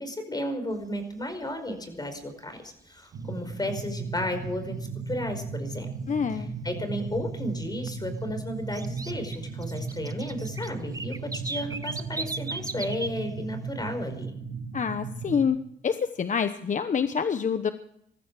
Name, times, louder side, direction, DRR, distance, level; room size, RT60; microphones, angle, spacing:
voice 1, 0.0-4.8 5.1-5.9 6.3-14.3, left 1 dB, 20° left, 7 dB, 5.0 m, -33 dB
sound 1, 0.7-0.8 1.2-1.4 1.8-2.2 2.7-3.9 4.2-4.3 4.9-5.0 5.5-5.6 5.9-6.0 6.4-7.2 7.5-13.2 13.4-13.9, right 3 dB, 15° right, 0.9 m, -38 dB
sound 2, 3.1-15.4, right 4 dB, 65° right, 2.9 m, -36 dB
voice 2, 6.1-6.5 14.7-15.6 15.8-17.7, left 6 dB, 40° left, 10 dB, 1.0 m, -26 dB
20.0 x 14.5 x 4.9 m, 0.74 s
cardioid pair, 90°, 20 cm